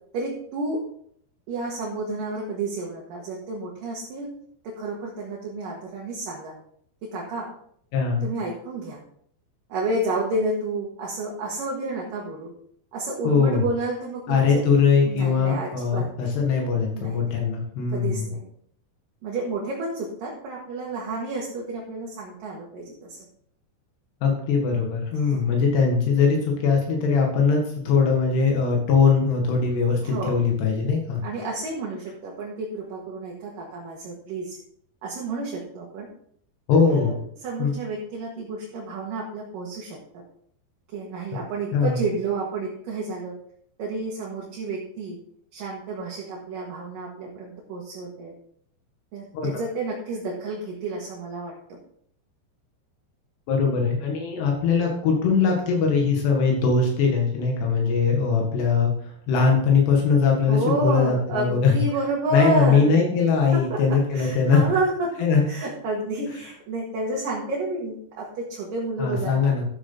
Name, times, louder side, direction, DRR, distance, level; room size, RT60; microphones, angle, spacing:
voice 1, 0.1-0.8 1.5-4.3 4.6-6.5 7.0-7.5 8.2-9.0 9.7-12.5 12.9-14.6 15.1-16.3 16.9-17.5 17.9-18.4 19.2-23.2 25.2-25.4 30.0-30.4 31.2-34.6 35.0-36.1 36.9-40.0 40.9-43.3 43.8-45.2 45.5-48.3 49.1-51.8 60.5-63.0 63.5-65.1 65.5-69.3, right 2 dB, 65° right, -3 dB, 3.1 m, -30 dB
voice 2, 7.9-8.3 13.2-13.6 14.3-18.3 24.2-31.2 36.7-37.2 37.6-37.8 41.7-42.0 49.3-49.5 53.5-61.8 62.3-64.6 65.2-65.4 69.0-69.7, left 5 dB, 90° left, 0 dB, 3.9 m, -21 dB
13.0 x 8.0 x 3.9 m, 0.64 s
omnidirectional pair, 4.6 m